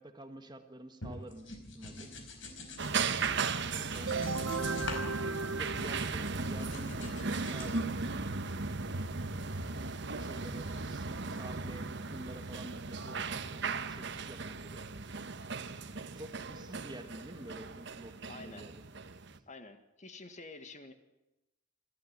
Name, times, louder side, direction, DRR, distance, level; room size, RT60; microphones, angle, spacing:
voice 1, 0.0-2.1 3.8-4.8 5.3-6.9 7.4-8.2 10.2-14.8 16.1-18.8, right 1 dB, 20° right, 7 dB, 1.6 m, -49 dB
sound 1, 1.0-3.4 3.8-5.1 5.3-6.2 6.6-7.8, left 2 dB, 65° left, 4.6 m, -45 dB
sound 2, 2.8-19.4, right 4 dB, 60° right, 1.3 m, -37 dB
sound 3, 4.1-6.7, right 4 dB, 85° right, 0.9 m, -36 dB
voice 2, 18.3-18.7 19.5-20.9, left 3 dB, 35° left, 8 dB, 1.9 m, -49 dB
28.0 x 13.0 x 9.7 m, 0.94 s
head